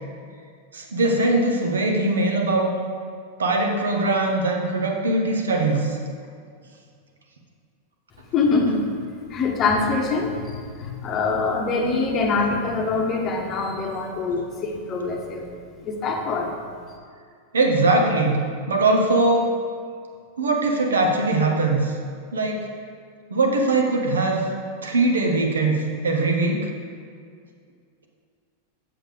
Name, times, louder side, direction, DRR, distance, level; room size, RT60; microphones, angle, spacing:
voice 1, 0.7-2.7 3.4-6.0 17.5-18.4 18.7-19.5 20.4-21.9 22.3-22.7 23.3-24.4 24.8-26.7, right 2 dB, 70° right, 2 dB, 0.9 m, -21 dB
voice 2, 8.3-8.9 9.3-15.4 15.8-16.5, left 4 dB, 30° left, 2 dB, 0.9 m, -24 dB
7.3 x 6.7 x 3.5 m, 2.2 s
figure-of-eight pair, 90°, 0 cm